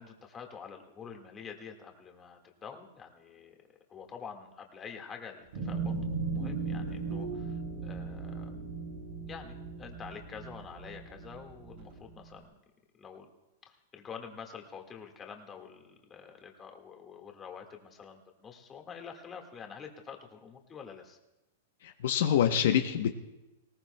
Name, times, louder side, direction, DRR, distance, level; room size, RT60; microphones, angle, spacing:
voice 1, 0.0-3.6 3.9-5.9 6.3-8.6 9.3-12.5 12.9-13.3 13.7-21.2, left 6 dB, 20° left, 3 dB, 1.7 m, -47 dB
sound 1, 5.5-12.1, right 4 dB, 65° right, 4.9 m, -37 dB
voice 2, 21.8-23.1, left 9 dB, 70° left, 6 dB, 0.8 m, -26 dB
19.5 x 17.5 x 2.2 m, 1.0 s
hypercardioid pair, 145°, 0 cm